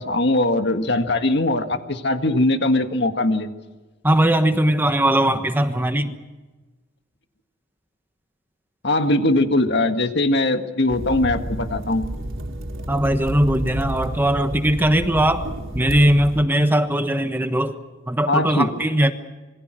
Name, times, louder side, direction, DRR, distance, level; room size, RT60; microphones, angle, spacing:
voice 1, 0.0-3.5 8.8-12.1 18.3-18.7, left 2 dB, 55° left, 7 dB, 1.8 m, -20 dB
voice 2, 4.0-6.2 12.9-15.5 15.7-17.8 18.1-19.1, right 1 dB, 10° right, 8 dB, 1.2 m, -19 dB
sound 1, 10.9-16.4, right 1 dB, 85° right, 4.4 m, -31 dB
27.5 x 23.0 x 6.3 m, 1.2 s
head